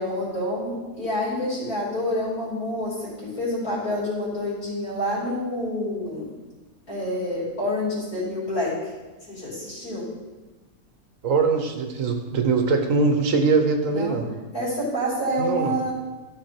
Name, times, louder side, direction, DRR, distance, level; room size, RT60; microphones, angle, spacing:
voice 1, 0.0-6.2 6.9-8.7 9.3-10.0 13.9-14.1 14.5-15.9, left 1 dB, 80° left, -10 dB, 3.7 m, -28 dB
voice 2, 11.2-14.3 15.4-15.8, right 4 dB, 65° right, 5 dB, 1.3 m, -22 dB
13.0 x 5.1 x 4.4 m, 1.2 s
omnidirectional pair, 1.5 m